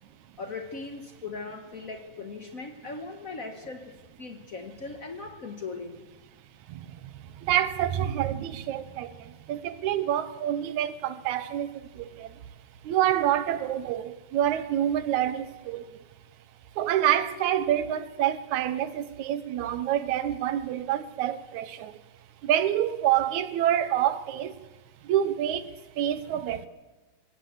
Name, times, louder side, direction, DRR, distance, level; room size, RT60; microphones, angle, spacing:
voice 1, 0.4-6.0, left 4 dB, 80° left, 0.7 m, -39 dB
voice 2, 6.7-12.4 12.8-15.9 16.8-22.0 22.4-24.6 25.0-26.7, right 11 dB, 75° right, 2.2 m, -27 dB
19.0 x 17.5 x 8.1 m
omnidirectional pair, 3.6 m